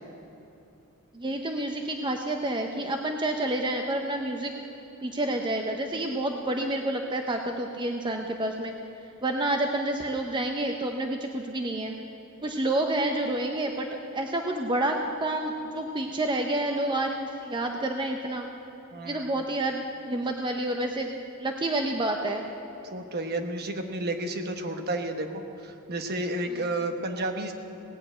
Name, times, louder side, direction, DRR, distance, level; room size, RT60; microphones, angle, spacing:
voice 1, 1.1-4.5 5.0-8.7 9.2-11.9 12.4-13.9 14.1-18.5 19.0-21.1 21.4-22.5, right 1 dB, 20° right, 3 dB, 0.7 m, -29 dB
voice 2, 18.9-19.3 22.9-27.5, right 1 dB, 45° right, 5 dB, 1.1 m, -31 dB
18.0 x 7.1 x 8.8 m, 2.9 s
head